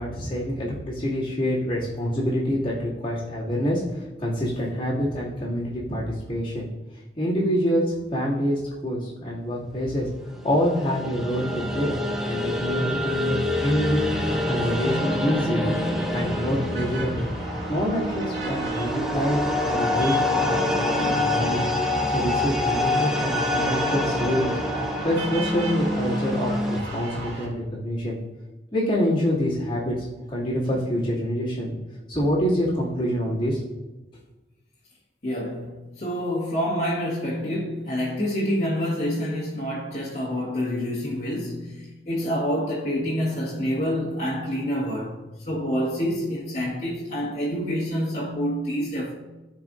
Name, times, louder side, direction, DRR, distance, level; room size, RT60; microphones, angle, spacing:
voice 1, 0.0-10.1 10.4-11.9 12.2-14.1 14.5-15.8 16.1-17.3 17.7-21.6 22.1-24.6 25.0-28.2 28.7-30.0 30.3-31.7 32.1-33.8, equal, 25° left, 2.3 m, -26 dB
sound 1, 10.3-26.8, left 1 dB, ahead, 0.6 m, -26 dB
sound 2, 13.5-27.5, right 1 dB, 65° right, 2.3 m, -36 dB
voice 2, 35.2-49.1, equal, 40° left, 1.7 m, -27 dB
14.0 x 4.7 x 2.6 m
head